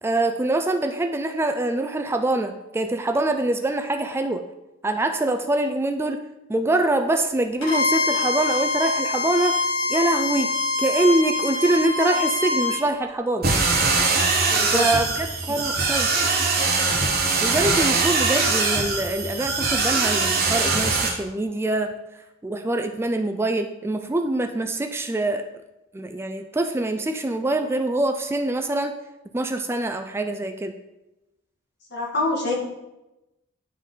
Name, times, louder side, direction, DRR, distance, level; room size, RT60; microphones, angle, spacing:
voice 1, 0.0-4.4 4.8-6.2 6.5-13.5 14.7-16.1 17.4-25.5 25.9-28.9 29.3-30.7, right 2 dB, 10° right, 6 dB, 0.3 m, -24 dB
Bowed string instrument, 7.6-12.8, left 3 dB, 90° left, 1.9 m, -24 dB
sound 1, 13.4-21.1, right 4 dB, 50° right, 1.2 m, -22 dB
voice 2, 14.5-14.9 31.9-32.5, left 1 dB, 55° left, -3 dB, 1.7 m, -25 dB
10.5 x 3.9 x 3.8 m, 0.99 s
head